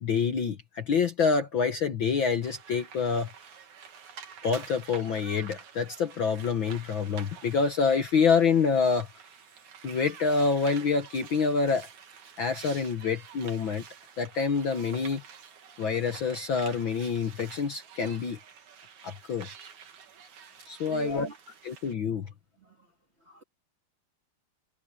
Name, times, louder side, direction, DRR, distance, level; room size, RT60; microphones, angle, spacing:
voice 1, 0.0-3.3 4.4-9.1 9.8-11.9 12.4-13.8 14.2-15.2 15.8-18.4 19.0-19.5 20.7-21.3 21.7-22.3, left 5 dB, 55° left, 1.6 m, -27 dB
sound 1, 2.4-21.9, right 7 dB, 85° right, 3.7 m, -49 dB
voice 2, 20.8-21.4 22.6-22.9 23.2-23.4, equal, 25° right, 1.6 m, -39 dB
omnidirectional pair, 3.3 m